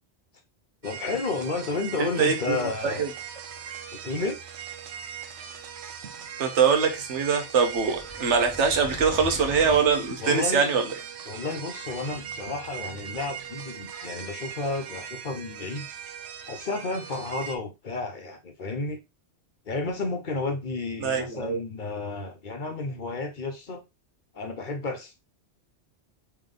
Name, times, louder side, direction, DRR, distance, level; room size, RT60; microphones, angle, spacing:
voice 1, 0.8-3.1 4.0-4.4 10.2-10.7 11.3-15.9 16.5-19.0 19.7-23.8 24.3-25.1, left 3 dB, 50° left, 0.9 m, -32 dB
sound 1, 0.8-17.6, right 8 dB, 70° right, 0.9 m, -40 dB
voice 2, 2.0-3.1 6.4-10.8 21.0-21.6, right 6 dB, 90° right, 1.2 m, -23 dB
sound 2, 7.6-10.2, left 2 dB, 25° left, 0.5 m, -40 dB
3.4 x 3.2 x 3.7 m
omnidirectional pair, 1.2 m